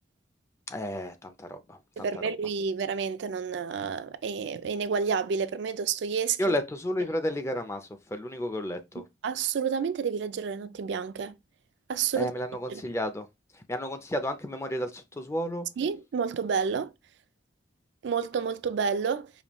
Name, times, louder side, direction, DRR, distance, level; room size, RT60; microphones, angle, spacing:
voice 1, 0.7-2.1 6.4-9.0 12.1-13.3 13.5-15.7, equal, 15° left, 0.4 m, -32 dB
voice 2, 2.0-6.6 9.2-11.4 11.9-12.3 12.7-12.8 15.8-16.9 18.0-19.3, right 6 dB, 65° right, 0.3 m, -29 dB
5.0 x 2.2 x 3.0 m
head